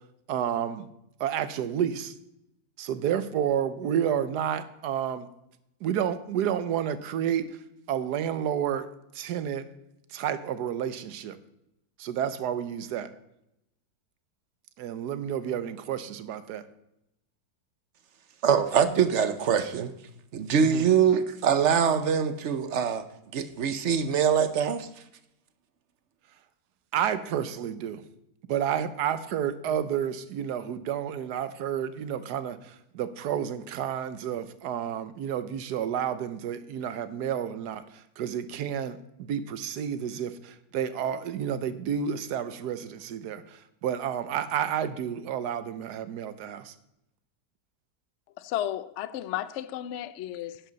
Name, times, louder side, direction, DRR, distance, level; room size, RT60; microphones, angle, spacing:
voice 1, 0.3-0.9 1.2-2.1 2.8-5.3 5.8-7.5 7.9-8.9 9.1-9.7 10.1-11.4 12.0-13.1 14.8-16.6 20.6-20.9 26.9-28.0 28.5-46.7, right 9 dB, 80° right, 1.3 m, -30 dB
voice 2, 18.4-19.9 20.3-23.0 23.3-24.9, right 7 dB, 55° right, 0.9 m, -23 dB
voice 3, 48.4-50.6, left 12 dB, 65° left, 0.7 m, -33 dB
11.0 x 10.0 x 4.0 m
omnidirectional pair, 1.7 m